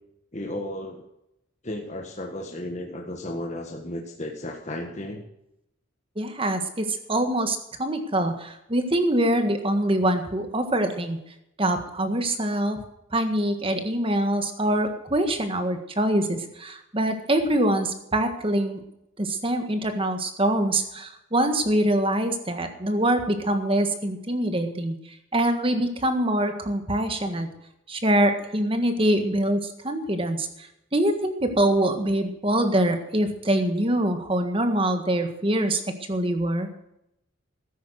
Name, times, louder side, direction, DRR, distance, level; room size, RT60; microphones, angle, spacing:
voice 1, 0.3-1.1 1.6-5.2, left 1 dB, 35° left, 2 dB, 1.6 m, -34 dB
voice 2, 6.2-11.2 11.6-12.8 13.1-18.8 19.2-25.0 25.3-27.5 27.9-35.8 36.1-36.7, right 1 dB, 25° right, 7 dB, 1.7 m, -24 dB
14.0 x 10.0 x 6.5 m, 0.83 s
head